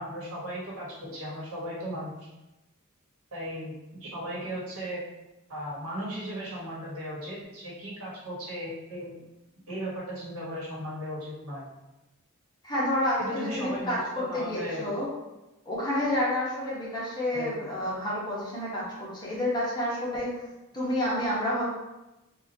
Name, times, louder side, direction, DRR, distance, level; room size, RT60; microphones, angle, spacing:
voice 1, 0.0-2.3 3.3-3.7 4.0-5.0 5.5-9.1 9.7-11.7 13.2-14.9 17.3-17.5, equal, 75° right, -5 dB, 1.2 m, -36 dB
voice 2, 12.6-15.1 15.7-20.3 20.7-21.6, left 1 dB, 20° left, -7 dB, 1.0 m, -29 dB
4.1 x 2.3 x 2.7 m, 1.0 s
head